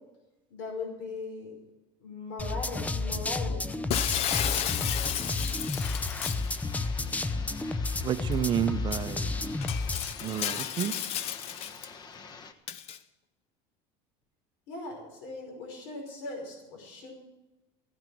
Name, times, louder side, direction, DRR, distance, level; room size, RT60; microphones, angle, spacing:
voice 1, 0.5-1.6 2.0-4.0 14.7-17.1, left 3 dB, 75° left, 1 dB, 5.3 m, -39 dB
sound 1, 2.4-10.1, left 3 dB, 10° left, 0.6 m, -31 dB
Shatter, 3.9-6.5 8.3-8.4 8.9-9.0 9.6-11.9 12.7-13.0, left 10 dB, 55° left, 0.8 m, -32 dB
sound 2, 5.7-12.5, left 5 dB, 35° left, 1.2 m, -47 dB
voice 2, 8.0-9.3 10.2-10.9, right 9 dB, 35° right, 12 dB, 0.7 m, -30 dB
15.0 x 9.2 x 7.8 m, 1.0 s
cardioid pair, 130°, 13 cm